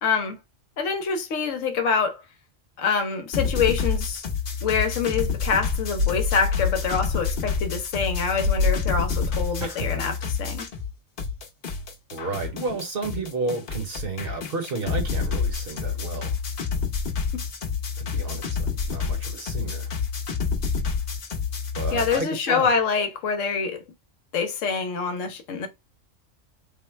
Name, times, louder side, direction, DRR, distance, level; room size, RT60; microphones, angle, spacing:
voice 1, 0.0-0.4 0.8-2.2 2.8-4.2 4.6-10.7 17.3-17.4 21.9-23.8 24.3-25.7, left 5 dB, 75° left, 1.1 m, -25 dB
sound 1, 3.3-10.9 11.2-22.2, left 5 dB, 50° left, 0.8 m, -28 dB
sound 2, 5.9-9.4, left 4 dB, 75° right, 0.9 m, -27 dB
voice 2, 9.6-10.0 12.1-16.4 18.0-19.9 21.7-22.7, right 3 dB, 50° right, 1.0 m, -32 dB
3.5 x 2.1 x 4.3 m
omnidirectional pair, 1.3 m